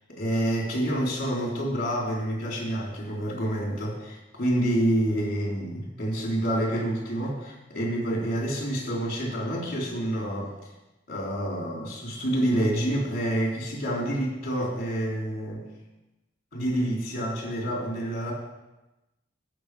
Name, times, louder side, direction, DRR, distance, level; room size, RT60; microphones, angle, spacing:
voice 1, 0.1-10.5 11.1-15.6 16.5-18.3, right 1 dB, 55° left, -2 dB, 3.5 m, -28 dB
14.0 x 5.9 x 4.9 m, 1.0 s
head